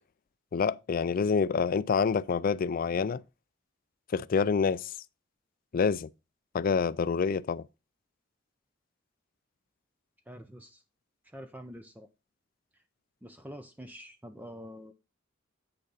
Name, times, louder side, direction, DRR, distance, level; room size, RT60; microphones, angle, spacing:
voice 1, 0.5-3.2 4.1-4.9 5.7-6.1 6.5-7.6, left 5 dB, 45° left, 0.4 m, -27 dB
voice 2, 10.3-10.8 11.2-12.1 12.7-12.8 13.2-14.9, equal, 10° right, 0.5 m, -46 dB
8.7 x 6.5 x 3.9 m
head